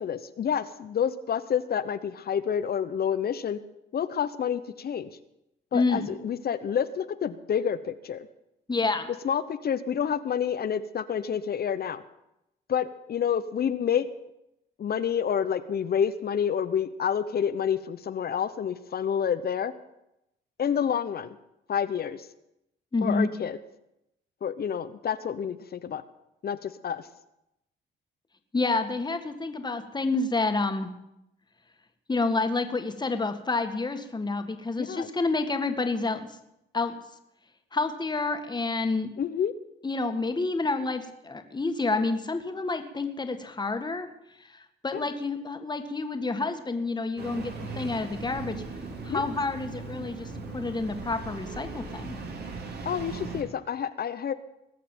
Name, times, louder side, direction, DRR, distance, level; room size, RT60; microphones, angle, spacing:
voice 1, 0.0-3.6 3.9-5.1 5.7-8.3 9.2-12.0 12.7-14.1 14.8-19.7 20.6-21.4 21.7-22.3 23.0-23.6 24.4-26.0 26.4-27.1 34.9-35.1 39.2-39.5 44.9-45.1 49.1-49.3 52.8-54.3, left 8 dB, 50° left, 12 dB, 0.9 m, -28 dB
voice 2, 5.7-6.1 8.7-9.1 22.9-23.3 28.5-30.9 32.1-36.4 36.7-36.9 37.7-39.1 39.8-44.1 44.4-48.6 49.0-52.2, left 3 dB, 20° left, 7 dB, 1.9 m, -29 dB
Engine starting, 47.2-53.4, right 4 dB, 55° right, 3.4 m, -38 dB
20.0 x 6.7 x 9.2 m, 0.86 s
cardioid pair, 90°, 20 cm